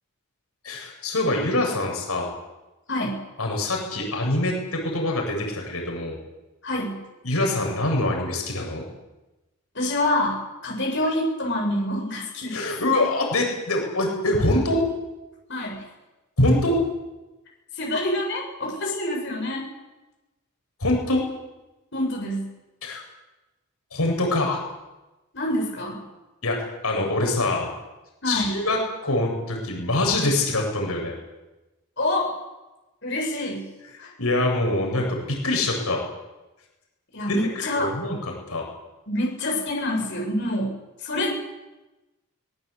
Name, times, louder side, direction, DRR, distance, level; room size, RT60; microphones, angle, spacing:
voice 1, 0.6-2.3 3.4-6.2 7.2-8.8 12.5-14.8 16.4-16.8 20.8-21.2 22.8-23.0 23.9-24.6 26.4-27.7 28.3-31.1 34.2-36.0 37.3-37.4 37.7-38.2 38.5-38.6, left 1 dB, 90° left, 1 dB, 7.5 m, -24 dB
voice 2, 2.9-3.2 6.6-7.0 9.7-12.7 15.5-15.8 17.7-19.7 21.9-22.5 25.3-26.0 28.2-28.6 32.0-32.3 33.0-33.7 34.0-34.1 37.1-37.9 39.1-41.3, left 1 dB, 55° left, -1 dB, 7.8 m, -26 dB
25.0 x 20.5 x 8.4 m, 1.0 s
head